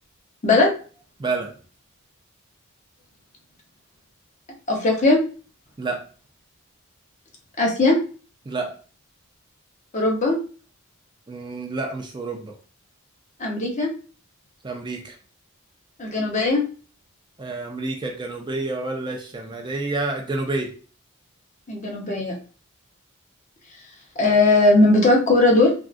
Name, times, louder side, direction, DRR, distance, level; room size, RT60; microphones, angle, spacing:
voice 1, 1.2-1.5 5.8-6.0 8.5-8.8 11.3-12.5 14.6-15.2 17.4-20.7, right 3 dB, 20° right, 2 dB, 0.3 m, -29 dB
voice 2, 4.7-5.2 7.6-8.0 9.9-10.4 13.4-13.9 16.0-16.6 21.7-22.3 24.2-25.7, left 2 dB, 35° left, 0 dB, 0.7 m, -18 dB
3.5 x 2.3 x 2.4 m, 0.39 s
head